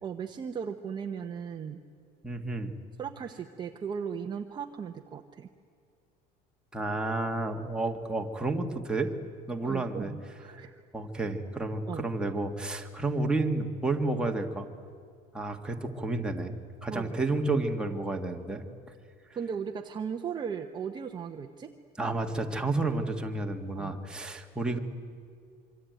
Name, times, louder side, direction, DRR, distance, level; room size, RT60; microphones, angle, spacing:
voice 1, 0.0-1.8 3.0-5.5 9.6-10.7 11.9-12.1 16.9-17.1 19.3-21.7 23.7-24.0, right 7 dB, 20° right, 4 dB, 0.9 m, -37 dB
voice 2, 2.2-2.7 6.7-9.1 9.5-10.1 10.9-14.7 15.3-16.5 16.8-18.6 22.0-24.8, right 2 dB, 5° right, 2 dB, 1.6 m, -31 dB
26.0 x 24.5 x 9.3 m, 2.3 s
cardioid pair, 170°, 20 cm